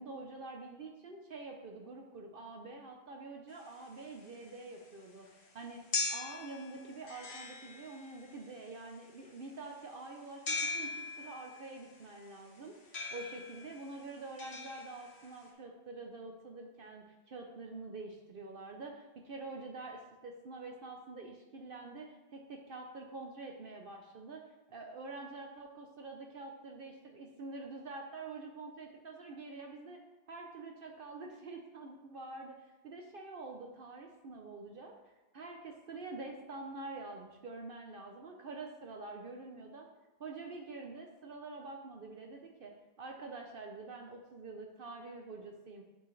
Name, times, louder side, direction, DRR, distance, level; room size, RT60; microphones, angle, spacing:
voice 1, 0.0-24.4 24.7-30.0 30.3-34.9 35.3-39.9 40.2-45.8, right 3 dB, 60° right, 1 dB, 0.9 m, -46 dB
sound 1, 3.5-15.5, left 4 dB, 80° left, 1.4 m, -41 dB
8.0 x 6.5 x 3.2 m, 1.1 s
omnidirectional pair, 1.1 m